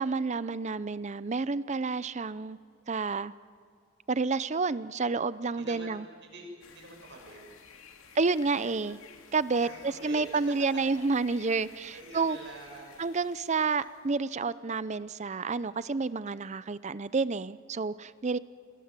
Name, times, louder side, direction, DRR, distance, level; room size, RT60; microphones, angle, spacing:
voice 1, 0.0-2.6 2.9-3.3 4.1-6.0 8.2-9.0 9.3-12.4 13.0-18.4, right 4 dB, 35° right, 16 dB, 0.5 m, -29 dB
voice 2, 5.5-5.9 6.2-7.4 9.6-10.8 11.4-13.0 15.6-16.0, right 2 dB, 55° right, 1 dB, 7.3 m, -47 dB
Soft Rain on a Tent & Bird Ambiance, 6.6-14.1, left 6 dB, 80° left, 2.2 m, -54 dB
29.0 x 22.0 x 7.5 m, 2.3 s
head